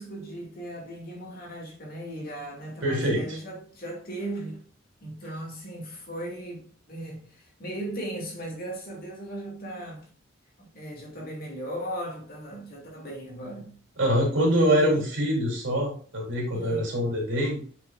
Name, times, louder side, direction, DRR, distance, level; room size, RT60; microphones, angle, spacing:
voice 1, 0.0-4.6 5.0-10.1 10.6-13.8 14.5-15.0 16.5-16.9, right 1 dB, 50° left, 2.4 m, -37 dB
voice 2, 2.8-3.4 14.0-17.6, equal, 75° right, 3.2 m, -24 dB
7.3 x 6.1 x 2.5 m
head